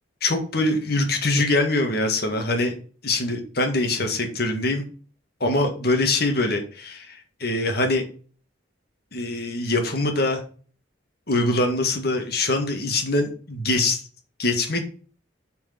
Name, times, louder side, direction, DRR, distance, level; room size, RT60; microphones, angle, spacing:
voice 1, 0.2-2.7 3.0-4.8 5.4-8.0 9.1-10.4 11.3-14.0 14.4-14.9, left 2 dB, 55° left, 4 dB, 1.9 m, -23 dB
8.9 x 4.8 x 5.9 m, 0.42 s
head